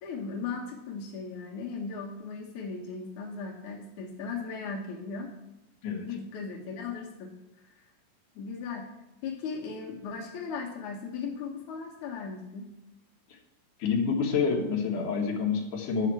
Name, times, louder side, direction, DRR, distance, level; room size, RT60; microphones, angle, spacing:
voice 1, 0.0-5.3 6.0-7.3 7.8-7.9 8.4-8.9 9.2-12.7, left 5 dB, 85° left, -1 dB, 1.7 m, -37 dB
voice 2, 13.8-16.1, left 5 dB, 70° left, -1 dB, 1.9 m, -28 dB
11.5 x 5.8 x 7.7 m, 0.93 s
omnidirectional pair, 5.9 m